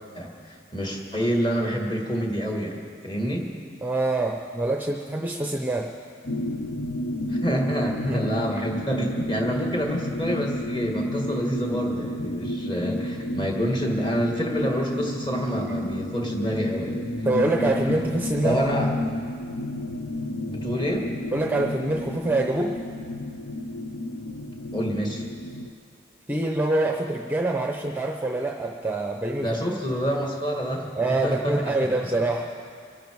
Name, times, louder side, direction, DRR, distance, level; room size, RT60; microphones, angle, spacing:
voice 1, 0.7-3.5 7.3-17.0 18.4-18.9 20.5-21.1 24.7-25.3 29.4-31.7 32.0-32.1, equal, 25° left, 0 dB, 1.9 m, -27 dB
voice 2, 3.8-5.9 8.0-8.3 17.2-18.6 21.3-22.7 26.3-29.5 31.0-32.5, right 2 dB, 10° right, 2 dB, 0.7 m, -25 dB
sound 1, 6.2-25.7, left 1 dB, 85° left, 0.8 m, -31 dB
24.5 x 11.0 x 4.7 m, 2.2 s
head